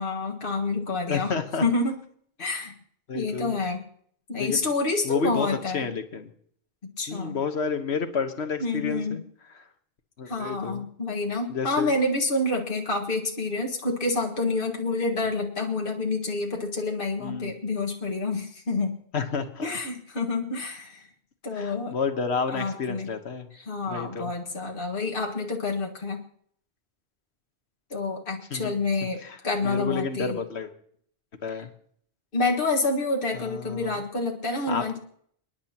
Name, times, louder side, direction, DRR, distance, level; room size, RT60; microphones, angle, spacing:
voice 1, 0.0-1.3 1.6-2.0 2.4-2.7 3.1-3.8 4.3-5.9 7.0-7.4 8.6-9.2 10.3-19.0 19.6-21.0 21.4-21.9 22.5-23.1 23.5-26.2 27.9-30.4 32.3-35.0, left 3 dB, 55° left, 0 dB, 1.9 m, -28 dB
voice 2, 1.1-1.6 3.1-3.5 4.4-4.7 5.0-5.5 5.7-6.3 7.1-9.2 9.6-9.7 10.2-10.8 11.5-11.9 17.2-17.5 19.1-19.6 21.5-23.5 23.9-24.3 28.5-28.7 29.2-29.4 29.6-30.7 31.4-31.7 33.3-34.0 34.7-35.0, left 5 dB, 75° left, 8 dB, 1.5 m, -30 dB
30.0 x 10.0 x 2.9 m, 0.63 s
omnidirectional pair, 1.1 m